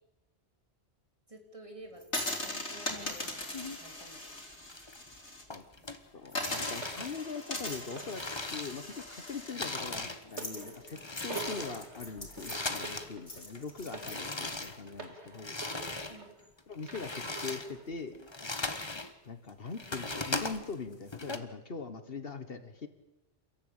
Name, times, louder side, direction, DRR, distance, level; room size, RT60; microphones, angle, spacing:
voice 1, 1.3-4.3 16.1-16.3, right 1 dB, 30° right, 3 dB, 3.6 m, -51 dB
sound 1, 2.0-5.4 5.8-5.9 6.3-14.7, left 2 dB, 90° left, 3.7 m, -40 dB
sound 2, 2.9-4.1 4.4-5.2 5.5-9.1 9.3-13.1 13.4-16.2 16.6-19.1 19.5-21.4, left 2 dB, 25° left, 1.3 m, -39 dB
voice 2, 6.1-8.2 8.5-15.6 16.7-18.2 19.2-22.9, left 5 dB, 60° left, 10 dB, 1.6 m, -42 dB
sound 3, 6.8-16.5 16.8-17.9 18.7-18.8, right 4 dB, 85° right, 2.7 m, -47 dB
29.0 x 13.5 x 8.9 m, 0.96 s
omnidirectional pair, 1.1 m